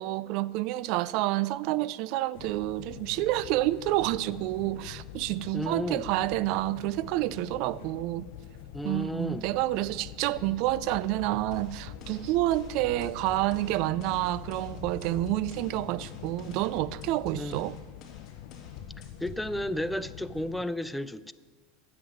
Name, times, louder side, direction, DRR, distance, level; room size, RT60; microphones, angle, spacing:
voice 1, 0.0-8.3 8.8-17.8, right 16 dB, 60° right, 0.4 m, -29 dB
sound 1, 2.3-20.6, left 9 dB, 65° left, 0.8 m, -44 dB
voice 2, 5.5-6.1 8.7-9.5 17.4-17.6 19.2-21.3, left 1 dB, 5° left, 0.5 m, -33 dB
sound 2, 11.5-19.5, left 5 dB, 40° left, 3.2 m, -49 dB
9.9 x 7.7 x 9.4 m
hypercardioid pair, 100°, 0 cm